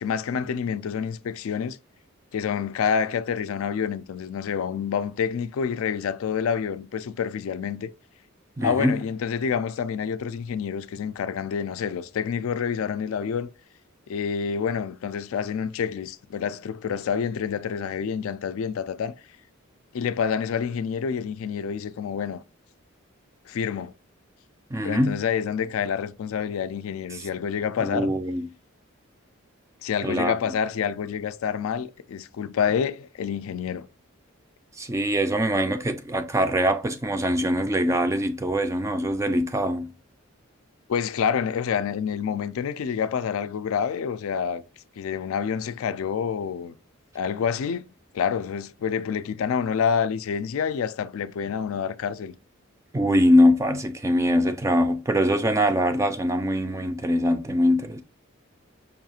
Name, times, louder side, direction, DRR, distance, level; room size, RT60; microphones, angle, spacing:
voice 1, 0.0-1.8 2.3-7.9 8.6-13.5 14.1-19.1 19.9-22.4 23.5-23.9 24.8-28.1 29.8-33.9 40.9-44.6 45.0-46.7 47.1-47.9 48.1-52.3, left 7 dB, 75° left, 0.3 m, -28 dB
voice 2, 8.6-9.0 24.7-25.2 27.1-27.3 27.8-28.5 30.0-30.3 34.8-39.9 52.9-58.0, equal, 15° right, 0.3 m, -23 dB
5.4 x 2.4 x 2.8 m
head